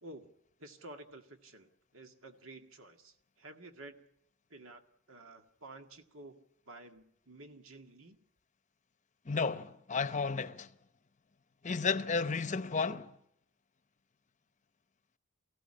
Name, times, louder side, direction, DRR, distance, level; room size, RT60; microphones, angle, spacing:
voice 1, 0.0-0.3 0.6-4.1 4.5-4.8 5.1-8.2, right 2 dB, 80° right, 1.9 m, -52 dB
voice 2, 9.3-10.7 11.6-13.1, left 4 dB, 35° left, 0.8 m, -33 dB
23.5 x 15.5 x 9.9 m
head